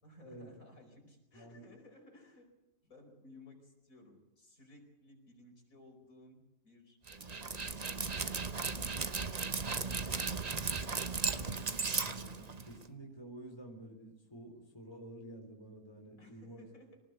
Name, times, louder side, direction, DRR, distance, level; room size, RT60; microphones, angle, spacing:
voice 1, 0.0-2.5 2.8-8.0 8.5-9.3 9.8-11.3 16.2-17.0, left 2 dB, 60° left, 3 dB, 5.2 m, -58 dB
Dog, 7.1-12.9, right 4 dB, 30° right, 0.9 m, -36 dB
voice 2, 12.0-16.7, right 1 dB, 15° left, 1 dB, 4.0 m, -50 dB
24.0 x 19.0 x 8.0 m, 0.93 s
omnidirectional pair, 1.6 m